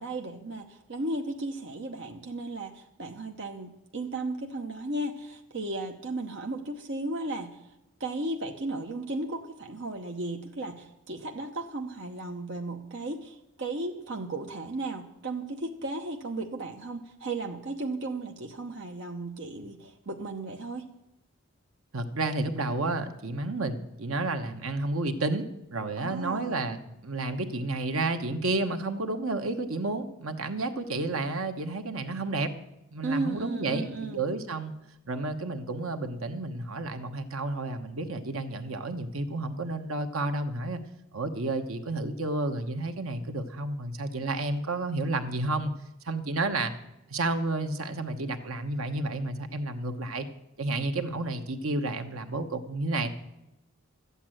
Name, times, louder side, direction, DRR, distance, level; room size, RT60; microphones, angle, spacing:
voice 1, 0.0-7.6 8.0-20.9 26.0-26.6 33.0-34.3, right 2 dB, 55° right, 3 dB, 0.9 m, -35 dB
voice 2, 21.9-32.5 32.9-33.9 34.1-34.7 35.1-40.8 41.1-45.7 46.0-46.7 47.1-50.3 50.6-53.1, right 2 dB, 75° right, 7 dB, 1.1 m, -31 dB
13.0 x 8.3 x 9.0 m, 0.90 s
head